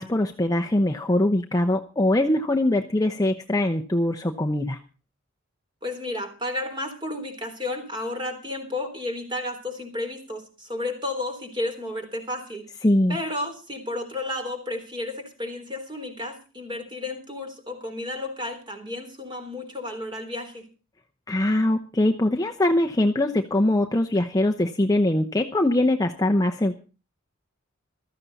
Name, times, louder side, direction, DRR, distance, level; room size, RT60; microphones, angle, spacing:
voice 1, 0.0-4.8 12.8-13.2 21.3-26.7, left 1 dB, 20° left, 4 dB, 0.8 m, -22 dB
voice 2, 5.8-12.7 13.1-20.6, left 2 dB, 25° right, 5 dB, 3.6 m, -32 dB
16.0 x 13.5 x 4.1 m, 0.35 s
head